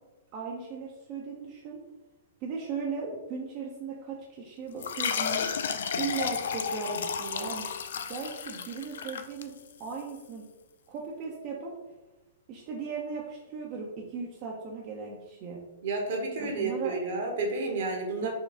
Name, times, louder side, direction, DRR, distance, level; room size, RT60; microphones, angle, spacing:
voice 1, 0.3-1.8 2.4-5.5 6.0-7.7 8.1-9.5 9.8-10.5 10.9-11.7 12.5-15.6 16.4-16.9 18.2-18.3, right 5 dB, 40° right, -2 dB, 0.6 m, -37 dB
sound 1, 4.8-10.0, left 7 dB, 65° left, 0.3 m, -32 dB
voice 2, 15.8-18.3, right 3 dB, 60° right, 2 dB, 1.0 m, -31 dB
4.4 x 2.3 x 3.5 m, 1.1 s
hypercardioid pair, 115°, 0 cm